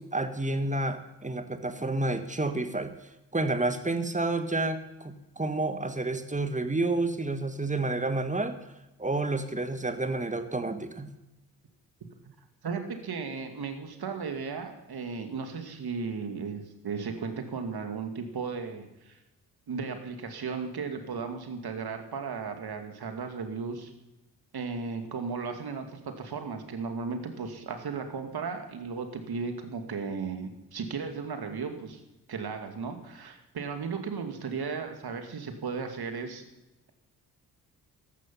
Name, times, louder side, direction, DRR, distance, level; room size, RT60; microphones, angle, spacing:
voice 1, 0.0-2.9 3.3-8.6 9.0-11.1, right 2 dB, 15° right, 9 dB, 1.7 m, -30 dB
voice 2, 12.6-19.2 19.7-23.9 24.5-32.0 32.3-36.4, right 5 dB, 50° right, 6 dB, 2.5 m, -35 dB
14.0 x 12.0 x 5.7 m, 0.95 s
hypercardioid pair, 40°, 47 cm